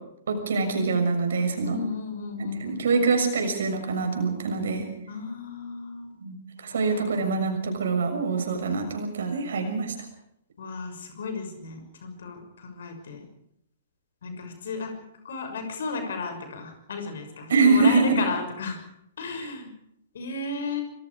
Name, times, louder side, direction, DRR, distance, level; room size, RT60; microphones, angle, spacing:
voice 1, 0.3-1.8 2.6-4.9 6.2-6.4 6.6-9.9 17.5-18.2, right 4 dB, 65° right, 5 dB, 6.5 m, -24 dB
voice 2, 1.6-3.1 5.1-6.1 6.7-7.1 10.6-13.3 14.2-14.9 15.2-18.8 19.2-19.7 20.1-20.8, left 4 dB, 60° left, 6 dB, 6.5 m, -34 dB
26.0 x 25.0 x 5.0 m, 0.76 s
figure-of-eight pair, 115°, 0 cm